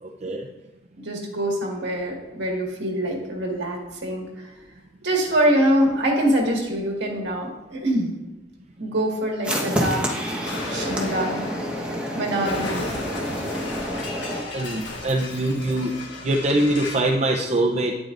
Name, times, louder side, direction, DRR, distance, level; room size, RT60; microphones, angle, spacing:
voice 1, 0.0-0.5 14.5-15.9 16.2-18.0, right 1 dB, 40° right, -1 dB, 0.7 m, -23 dB
voice 2, 1.0-4.5 5.0-8.1 8.8-10.3 10.7-11.4 12.2-12.8, right 1 dB, 65° right, -1 dB, 1.9 m, -24 dB
sound 1, 9.4-14.4, equal, 5° right, 1.3 m, -28 dB
Explosion, 10.5-17.1, left 2 dB, 70° left, 1.6 m, -34 dB
10.0 x 8.5 x 2.6 m, 1.1 s
head